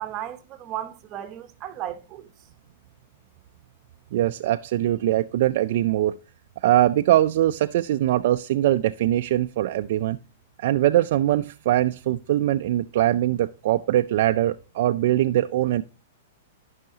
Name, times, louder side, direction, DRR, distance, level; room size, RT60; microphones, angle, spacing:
voice 1, 0.0-2.3, right 11 dB, 25° right, 0.8 m, -35 dB
voice 2, 4.1-6.2 6.6-10.2 10.6-15.8, right 13 dB, 55° right, 0.3 m, -22 dB
13.5 x 5.6 x 2.8 m
hypercardioid pair, 160°, 0 cm